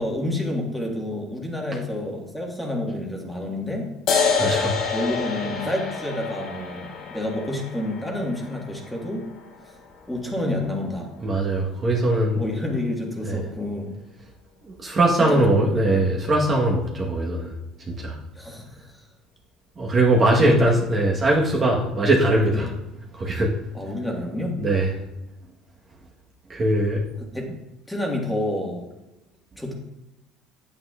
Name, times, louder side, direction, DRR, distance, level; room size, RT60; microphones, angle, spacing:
voice 1, 0.0-3.9 4.9-9.3 10.1-11.1 12.3-13.9 15.1-15.6 18.3-18.8 20.3-20.5 22.5-22.7 23.7-24.6 27.3-27.4 27.9-28.8 29.6-29.7, left 1 dB, 5° left, -1 dB, 1.6 m, -29 dB
sound 1, 4.1-11.0, left 5 dB, 60° left, 2.5 m, -28 dB
voice 2, 4.4-4.7 11.2-12.4 13.2-13.4 14.7-17.5 17.9-18.2 19.8-22.7 23.1-23.5 24.6-24.9 26.5-27.0, right 1 dB, 25° right, -2 dB, 1.2 m, -21 dB
9.4 x 8.8 x 2.4 m, 0.95 s
cardioid pair, 130°, 0 cm